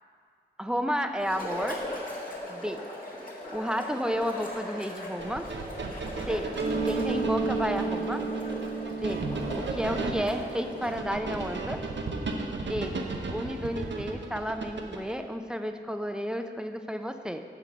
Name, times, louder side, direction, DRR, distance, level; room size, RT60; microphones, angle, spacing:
voice 1, 0.6-1.8 2.5-2.8 3.5-5.5 6.2-6.5 6.8-8.3 9.0-9.3 9.5-11.8 12.7-13.0 13.3-17.4, equal, 5° right, 7 dB, 0.6 m, -32 dB
sound 1, 1.2-11.1, left 1 dB, 50° left, 1.8 m, -39 dB
sound 2, 5.2-15.2, right 3 dB, 85° right, 0.7 m, -35 dB
Mallet percussion, 6.6-12.1, right 4 dB, 55° right, 1.3 m, -34 dB
9.0 x 3.9 x 6.9 m, 2.1 s
cardioid pair, 45°, 18 cm